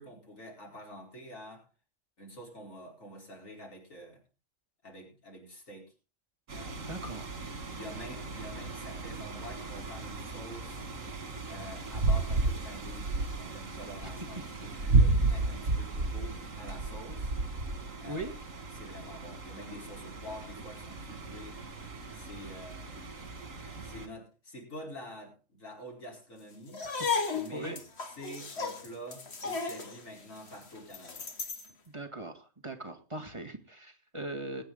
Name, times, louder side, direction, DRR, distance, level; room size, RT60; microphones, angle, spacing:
voice 1, 0.0-1.7 2.2-4.2 4.8-5.9 6.5-6.9 7.7-10.9 11.5-17.3 18.0-18.3 18.7-21.6 22.1-23.1 23.8-26.8 27.3-27.8 28.1-31.3, equal, 90° left, 0 dB, 4.9 m, -47 dB
sound 1, 6.5-24.1, right 3 dB, 75° right, 2.5 m, -33 dB
voice 2, 6.9-7.3 18.1-18.3 26.8-26.9 27.5-27.8 31.9-34.6, right 1 dB, 25° right, 3 dB, 1.8 m, -40 dB
sound 2, 26.7-31.7, left 5 dB, 55° left, 2.0 m, -35 dB
20.5 x 9.3 x 3.9 m, 0.31 s
omnidirectional pair, 1.3 m